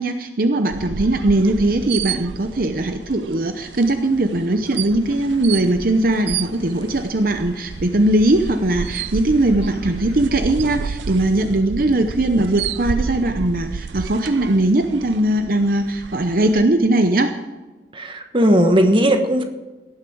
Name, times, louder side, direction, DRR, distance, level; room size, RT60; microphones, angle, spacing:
voice 1, 0.0-17.3, right 1 dB, 50° right, 7 dB, 0.8 m, -19 dB
sound 1, 0.7-16.6, right 6 dB, 85° right, 0.4 m, -31 dB
sound 2, 5.0-10.2, left 1 dB, 30° left, 4.8 m, -46 dB
voice 2, 17.9-19.4, equal, 30° right, 6 dB, 1.2 m, -16 dB
17.5 x 11.5 x 4.7 m, 1.2 s
head